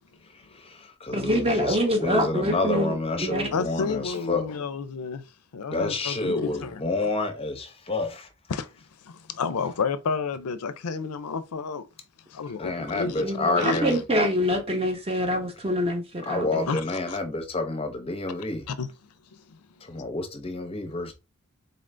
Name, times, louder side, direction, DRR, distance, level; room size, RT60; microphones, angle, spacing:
voice 1, 0.3-4.5 5.7-8.3 12.5-14.0 16.3-18.7 19.8-21.1, left 2 dB, 25° left, 0.7 m, -29 dB
voice 2, 1.1-3.5 13.2-16.7, equal, 25° right, 0.9 m, -25 dB
voice 3, 3.5-5.2 5.5-6.8 8.5-8.7 9.0-11.9 12.3-13.2 13.6-14.0 16.7-16.8 17.1-17.2 18.7-18.9 19.5-19.6, left 5 dB, 90° left, 0.5 m, -30 dB
4.0 x 2.6 x 3.2 m
head